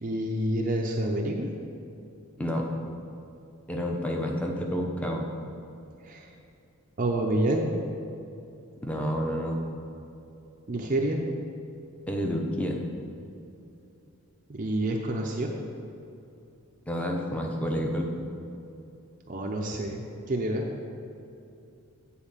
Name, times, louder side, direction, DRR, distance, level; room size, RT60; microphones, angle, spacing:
voice 1, 0.0-1.5 6.0-6.3 7.0-7.7 10.7-11.2 14.5-15.5 19.3-20.6, right 1 dB, 35° right, 0 dB, 0.6 m, -28 dB
voice 2, 3.7-5.2 8.8-9.6 12.1-12.8 16.9-18.1, equal, 5° left, 0 dB, 0.9 m, -29 dB
8.9 x 4.4 x 7.3 m, 2.7 s
head